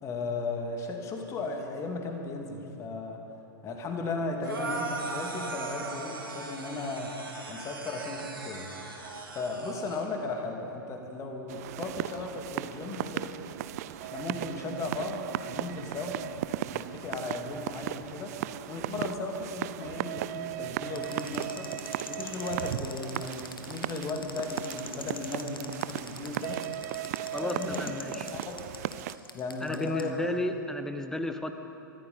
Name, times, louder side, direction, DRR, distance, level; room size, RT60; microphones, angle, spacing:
voice 1, 0.0-3.2 3.6-7.1 7.5-8.7 9.3-13.3 14.0-16.2 16.7-18.3 18.7-21.7 22.1-26.6 27.3-28.6 29.3-30.1, left 3 dB, 25° left, 3 dB, 2.2 m, -36 dB
sound 1, 4.4-10.0, right 3 dB, 80° right, 2.2 m, -38 dB
sound 2, 11.5-29.2, right 13 dB, 45° right, 0.5 m, -36 dB
sound 3, 21.0-30.0, left 3 dB, 80° left, 1.3 m, -43 dB
voice 2, 27.3-28.3 29.6-31.5, left 1 dB, 5° left, 7 dB, 0.9 m, -33 dB
23.5 x 15.0 x 4.1 m, 2.8 s
figure-of-eight pair, 100°, 12 cm